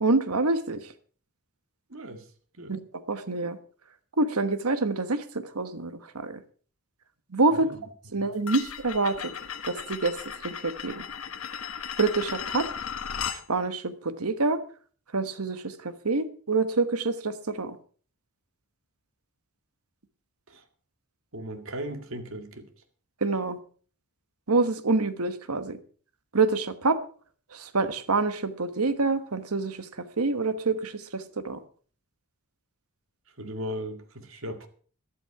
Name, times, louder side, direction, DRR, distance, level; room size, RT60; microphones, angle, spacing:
voice 1, 0.0-0.8 2.7-2.8 3.1-3.6 4.2-6.4 7.3-7.7 8.1-9.3 9.6-10.2 10.4-11.0 12.0-12.7 13.3-14.6 15.1-17.8 23.2-23.6 24.5-25.8 26.3-27.0 27.5-29.9 30.2-31.6, right 3 dB, 80° right, 1.3 m, -26 dB
voice 2, 1.9-2.3 2.5-2.7 7.5-7.8 8.1-8.3 20.5-20.6 21.3-22.7 33.4-34.7, equal, 60° right, 2.0 m, -37 dB
sound 1, 8.5-13.4, left 7 dB, 70° left, 1.1 m, -36 dB
14.0 x 12.0 x 4.8 m
head